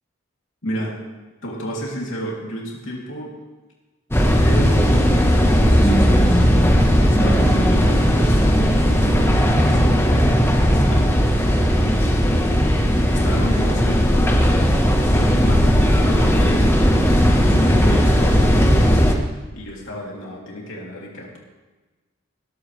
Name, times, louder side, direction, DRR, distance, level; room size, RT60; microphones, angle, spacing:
voice 1, 0.6-1.0 1.4-3.3 4.4-6.5 7.1-11.1 13.1-14.3 15.1-15.7 16.0-19.2 19.5-21.4, equal, 70° left, -2 dB, 3.1 m, -32 dB
sound 1, 4.1-19.1, equal, 10° left, 1.3 m, -16 dB
19.5 x 12.5 x 3.4 m, 1.2 s
head